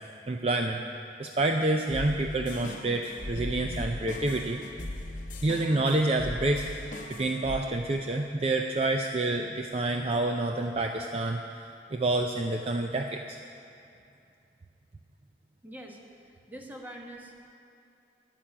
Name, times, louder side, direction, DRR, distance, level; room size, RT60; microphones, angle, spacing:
voice 1, 0.3-0.8 1.2-4.6 5.4-11.6 11.9-13.4, right 2 dB, 35° right, 4 dB, 0.5 m, -28 dB
sound 1, 1.9-7.6, left 1 dB, 45° left, 0.9 m, -39 dB
voice 2, 15.6-17.3, right 1 dB, 10° right, 0 dB, 1.3 m, -44 dB
11.5 x 7.6 x 9.8 m, 2.7 s
head